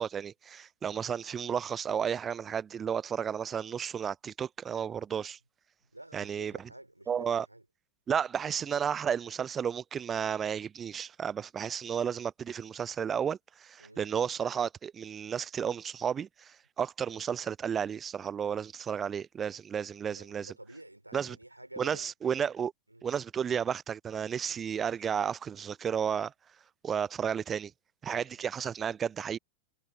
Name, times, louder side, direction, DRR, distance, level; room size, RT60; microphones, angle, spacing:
voice 1, 0.0-5.4 6.1-6.5 7.1-7.5 8.1-20.5 21.1-21.4 21.8-22.7 23.0-26.3 26.8-27.7 28.0-29.4, right 7 dB, 20° right, 0.4 m, -32 dB
voice 2, 5.9-7.6 13.8-14.1 20.1-22.1 22.9-23.1, right 1 dB, 85° right, 4.1 m, -50 dB
figure-of-eight pair, 90°, 0 cm